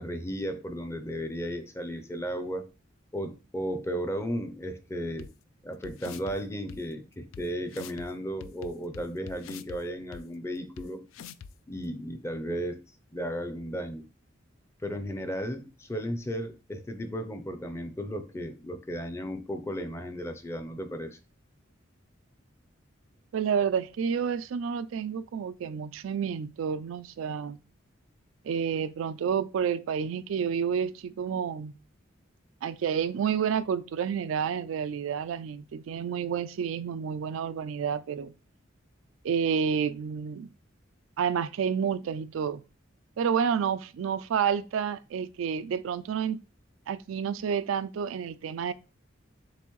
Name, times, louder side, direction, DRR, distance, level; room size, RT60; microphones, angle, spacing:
voice 1, 0.0-2.7 3.1-5.3 5.6-11.0 11.7-12.8 13.1-14.0 14.8-21.2, equal, 15° left, 0.5 m, -34 dB
sound 1, 5.2-5.3 5.8-6.3 6.7-6.8 7.3-7.4 7.7-8.1 8.4-9.8 10.1-10.2 10.8-10.9 11.1-11.5, left 7 dB, 80° left, 0.3 m, -44 dB
voice 2, 23.3-27.6 28.4-31.7 32.6-38.3 39.2-40.5 41.2-42.6 43.2-46.4 46.9-48.7, right 7 dB, 85° right, 0.3 m, -29 dB
6.9 x 2.5 x 3.1 m
head